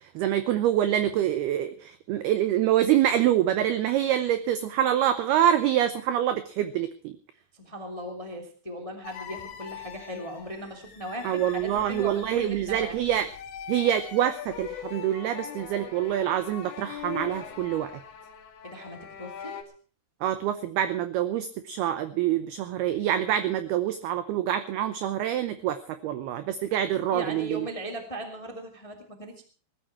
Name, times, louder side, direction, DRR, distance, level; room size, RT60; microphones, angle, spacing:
voice 1, 0.0-7.2 11.2-13.3 13.7-18.0 20.2-27.7, right 11 dB, 85° right, 11 dB, 2.2 m, -26 dB
voice 2, 7.5-12.9 18.6-19.5 27.1-29.4, equal, 30° left, 4 dB, 0.5 m, -38 dB
sound 1, 9.0-19.6, left 8 dB, 80° left, 4.8 m, -42 dB
19.5 x 13.0 x 4.6 m, 0.39 s
omnidirectional pair, 5.7 m